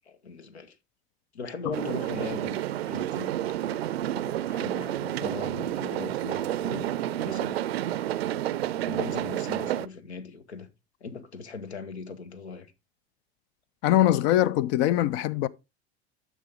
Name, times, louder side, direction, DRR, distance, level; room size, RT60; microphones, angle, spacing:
voice 1, 0.0-0.8 1.3-3.3 3.6-7.6 8.9-10.7 11.0-12.7, left 4 dB, 75° left, 1.2 m, -40 dB
sound 1, 1.7-9.9, right 12 dB, 65° right, 0.6 m, -30 dB
voice 2, 13.8-15.5, left 13 dB, 35° left, 0.4 m, -22 dB
11.5 x 6.1 x 3.5 m
figure-of-eight pair, 80°, 33 cm